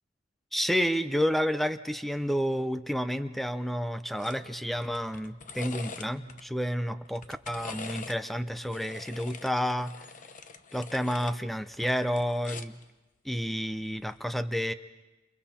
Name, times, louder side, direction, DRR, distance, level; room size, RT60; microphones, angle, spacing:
voice 1, 0.5-9.9 10.7-12.8 13.2-14.7, equal, ahead, 11 dB, 0.7 m, -30 dB
sound 1, 4.2-4.4 4.7-6.4 7.1-8.2 8.6-11.4 11.7-12.8 14.0-14.2, left 5 dB, 45° left, 0.9 m, -44 dB
29.0 x 28.5 x 4.4 m, 1.1 s
head